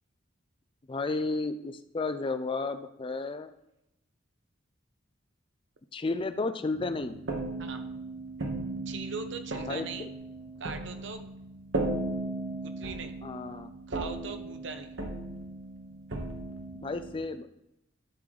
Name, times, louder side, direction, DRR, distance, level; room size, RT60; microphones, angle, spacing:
voice 1, 0.9-3.5 5.9-7.2 9.7-10.1 13.2-13.7 16.8-17.5, left 3 dB, 25° left, 10 dB, 0.4 m, -32 dB
sound 1, 6.7-17.2, right 2 dB, 80° right, 1.4 m, -36 dB
voice 2, 8.9-10.1 10.6-11.3 12.5-13.2 13.9-14.9, right 4 dB, 65° right, 7 dB, 0.8 m, -40 dB
11.5 x 3.9 x 4.8 m, 0.85 s
head